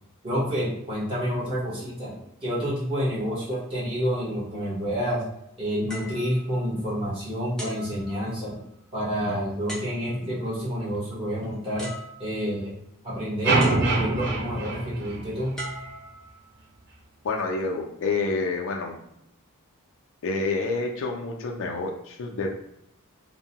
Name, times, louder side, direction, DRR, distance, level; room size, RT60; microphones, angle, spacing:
voice 1, 0.2-2.1 2.4-5.2 5.6-8.5 8.9-11.9 12.2-12.7 13.0-15.6, equal, 25° right, -8 dB, 1.1 m, -28 dB
sound 1, 5.9-7.1 7.6-8.7 9.7-10.4 11.4-11.5 11.8-12.6 13.6-14.4 15.6-16.7 17.4-17.6, right 1 dB, 5° left, 0.6 m, -40 dB
sound 2, 13.4-15.7, right 3 dB, 50° right, 0.5 m, -25 dB
voice 2, 17.2-19.0 20.2-22.5, left 3 dB, 60° left, 2 dB, 0.4 m, -28 dB
2.7 x 2.1 x 2.8 m, 0.77 s
head